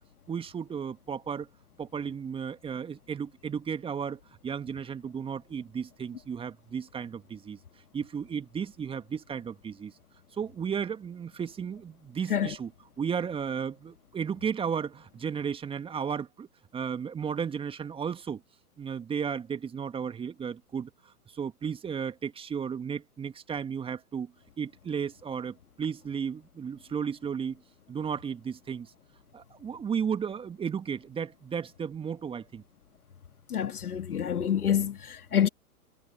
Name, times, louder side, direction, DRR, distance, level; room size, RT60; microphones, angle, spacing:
voice 1, 0.3-1.5 1.8-7.6 7.9-9.9 10.4-12.7 13.0-16.5 16.7-18.4 18.8-20.9 21.3-24.3 24.6-27.6 27.9-28.9 29.3-32.6, right 7 dB, 10° right, 1.9 m, -34 dB
voice 2, 33.5-35.5, left 9 dB, 70° left, 1.8 m, -27 dB
figure-of-eight pair, 120°, 46 cm